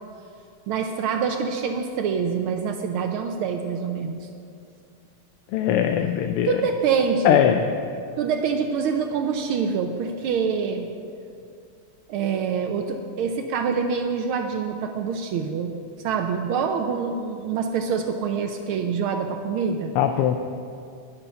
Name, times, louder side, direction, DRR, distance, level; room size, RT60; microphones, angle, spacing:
voice 1, 0.7-4.3 6.5-7.5 8.2-10.9 12.1-15.7 16.0-19.9, right 6 dB, 75° right, 4 dB, 1.5 m, -25 dB
voice 2, 5.5-6.6 7.2-7.7 19.9-20.4, left 10 dB, 90° left, 6 dB, 1.6 m, -20 dB
19.5 x 7.0 x 5.7 m, 2.5 s
omnidirectional pair, 2.4 m